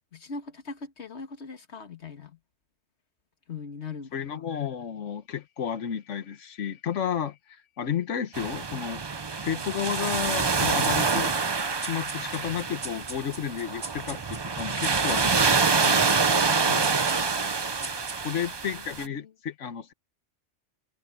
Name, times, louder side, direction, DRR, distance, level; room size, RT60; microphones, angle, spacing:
voice 1, 0.1-2.4 3.5-4.4 10.5-10.8 16.7-17.2 18.2-18.4 18.7-19.3, left 5 dB, 65° left, 2.0 m, -41 dB
voice 2, 4.1-9.0 9.4-11.3 11.8-16.1 18.2-19.9, left 8 dB, 90° left, 1.4 m, -32 dB
sound 1, 8.3-19.0, right 4 dB, 30° right, 0.5 m, -26 dB
sound 2, 10.8-18.6, right 3 dB, 65° right, 2.5 m, -43 dB
omnidirectional pair, 1.2 m